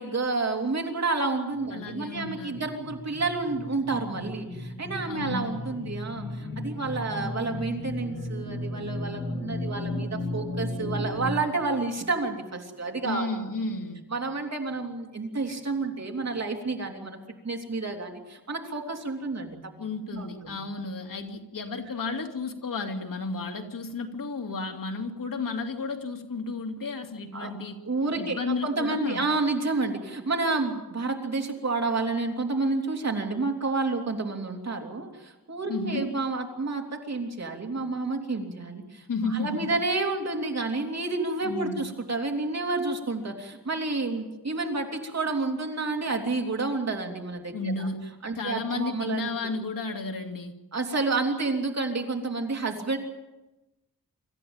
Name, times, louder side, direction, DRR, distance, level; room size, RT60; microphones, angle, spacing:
voice 1, 0.0-13.3 14.1-17.2 17.4-19.7 20.1-20.6 27.3-27.5 27.8-47.9 48.2-49.5 50.7-53.0, right 3 dB, 50° right, 2 dB, 3.4 m, -30 dB
sound 1, 1.5-11.3, left 1 dB, 35° left, 6.1 m, -35 dB
voice 2, 1.7-2.6 5.1-5.4 13.0-14.0 19.8-27.8 28.2-29.3 35.7-36.1 39.1-39.7 41.4-41.9 47.5-48.0 48.4-50.5, left 3 dB, 65° left, 3 dB, 2.6 m, -32 dB
26.0 x 14.0 x 9.0 m, 1.0 s
wide cardioid pair, 140°, 35 cm